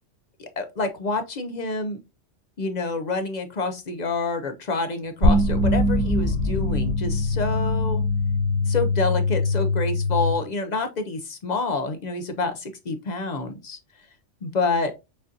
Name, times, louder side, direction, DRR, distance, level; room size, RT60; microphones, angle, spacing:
voice 1, 0.4-2.0 2.6-8.0 8.7-13.8 14.4-14.9, left 3 dB, 55° left, 7 dB, 0.5 m, -28 dB
sound 1, 5.2-10.3, left 2 dB, 85° right, 2.2 m, -22 dB
6.2 x 2.5 x 2.6 m, 0.25 s
omnidirectional pair, 1.3 m